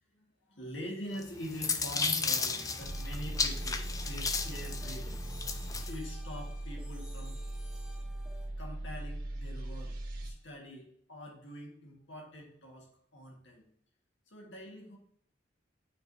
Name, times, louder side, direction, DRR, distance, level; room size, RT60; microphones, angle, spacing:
voice 1, 0.1-5.2 5.9-7.4 8.6-9.9 10.2-13.6 14.3-15.0, equal, 75° left, 0 dB, 1.6 m, -44 dB
sound 1, 1.2-5.9, left 4 dB, 20° left, 0.4 m, -34 dB
sound 2, 1.6-8.5, equal, 5° right, 1.0 m, -55 dB
sound 3, 2.8-10.3, right 1 dB, 55° right, 1.3 m, -39 dB
8.9 x 4.6 x 2.7 m, 0.67 s
head